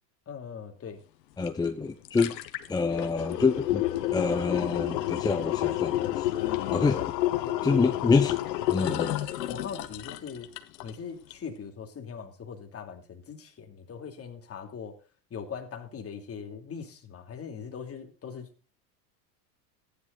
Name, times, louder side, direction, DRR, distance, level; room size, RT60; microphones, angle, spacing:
voice 1, 0.3-1.0 6.4-6.5 7.0-7.1 7.4-8.0 8.8-9.0 9.5-10.5 10.8-15.0 15.3-18.5, left 6 dB, 30° left, 4 dB, 3.0 m, -40 dB
voice 2, 1.4-2.4 2.7-3.8 4.1-6.3 6.7-7.0 7.6-8.4 8.7-9.1, left 4 dB, 10° left, 6 dB, 0.6 m, -26 dB
sound 1, 1.5-1.6 1.9-10.9 11.3-11.4, left 14 dB, 80° left, 1.4 m, -30 dB
15.0 x 10.5 x 4.1 m, 0.34 s
supercardioid pair, 110°, 49 cm